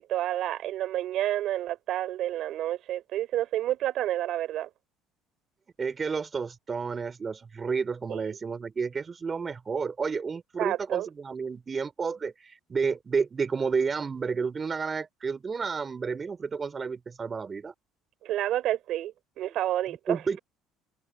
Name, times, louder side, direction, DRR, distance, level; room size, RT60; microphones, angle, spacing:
voice 1, 0.0-4.7 8.1-8.4 10.6-11.1 18.2-20.2, right 13 dB, 65° right, 4.0 m, -29 dB
voice 2, 5.8-17.7 20.1-20.4, right 5 dB, 30° right, 4.2 m, -31 dB
supercardioid pair, 75°, 0 cm